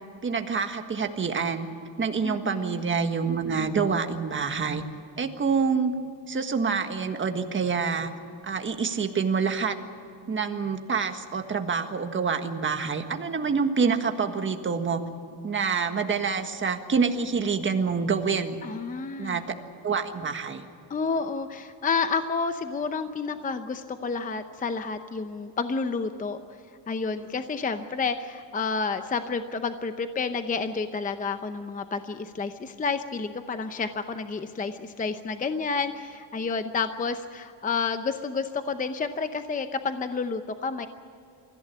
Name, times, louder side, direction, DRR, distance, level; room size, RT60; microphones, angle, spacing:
voice 1, 0.2-1.7 2.0-4.8 5.2-5.9 6.3-8.1 8.4-9.7 10.3-15.0 15.4-18.6 19.2-19.6 19.8-20.6, right 5 dB, 25° right, 6 dB, 1.6 m, -27 dB
voice 2, 2.2-2.8 18.6-19.4 20.9-26.4 26.9-40.9, left 4 dB, 20° left, 9 dB, 0.7 m, -30 dB
24.0 x 15.0 x 9.8 m, 2.6 s
cardioid pair, 155°, 43 cm